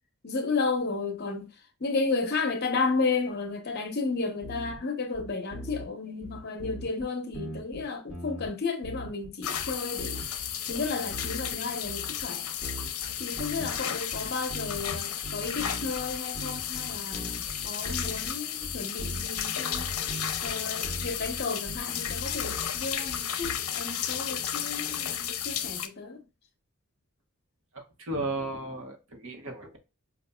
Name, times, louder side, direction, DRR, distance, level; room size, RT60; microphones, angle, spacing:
voice 1, 0.2-1.5 1.8-10.2 10.7-12.5 13.2-19.9 20.4-26.2, left 4 dB, 45° left, 0.8 m, -32 dB
sound 1, 4.4-4.8 5.1-5.9 6.2-7.1 7.3-8.5 8.8-9.3 9.6-11.6 11.9-12.3 12.6-13.8 14.1-14.9 15.2-18.3 18.6-19.4 19.7-20.5 20.8-23.5, right 1 dB, 5° right, 0.9 m, -40 dB
sound 2, 9.4-25.9, left 9 dB, 80° left, 0.6 m, -33 dB
voice 2, 27.7-29.8, right 2 dB, 65° right, 1.0 m, -35 dB
5.3 x 2.4 x 2.2 m
head